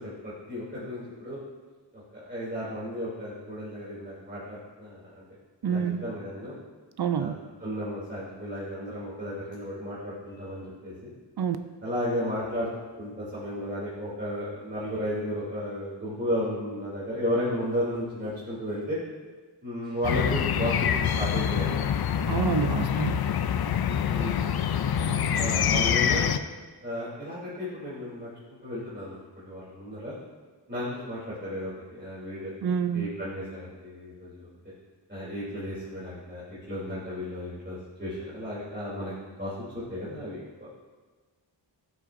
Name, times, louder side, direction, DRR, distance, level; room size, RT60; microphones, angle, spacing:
voice 1, 0.0-1.4 1.9-5.2 5.6-6.6 7.1-7.3 7.6-11.1 11.8-12.7 13.0-19.0 19.6-21.8 24.1-24.4 25.3-26.3 26.8-28.3 28.6-30.2 30.7-32.5 32.9-34.5 35.1-39.1 39.4-40.4, equal, 25° right, -10 dB, 3.0 m, -34 dB
voice 2, 5.6-6.0 7.0-7.4 11.4-11.6 22.3-23.2 32.6-33.1, right 7 dB, 60° right, 9 dB, 0.5 m, -27 dB
sound 1, 20.0-26.4, left 8 dB, 55° left, 0.5 m, -25 dB
12.5 x 7.8 x 2.6 m, 1.3 s
wide cardioid pair, 80°, 45 cm